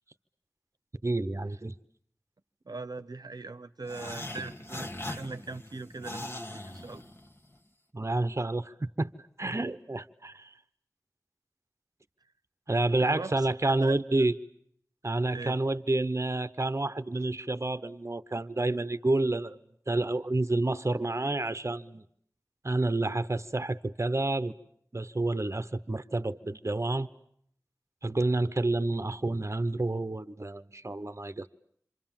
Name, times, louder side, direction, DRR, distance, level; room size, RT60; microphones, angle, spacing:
voice 1, 1.0-1.7 7.9-9.1 9.4-10.5 12.7-14.3 15.0-19.6 19.9-22.1 22.6-24.5 24.9-27.1 28.0-31.5, right 2 dB, 45° right, 1.0 m, -29 dB
voice 2, 2.6-7.0 13.0-14.3 15.3-15.6, right 3 dB, 85° right, 1.0 m, -40 dB
sound 1, 3.8-7.6, left 1 dB, 40° left, 1.8 m, -41 dB
28.0 x 26.0 x 7.5 m
wide cardioid pair, 45°, 7 cm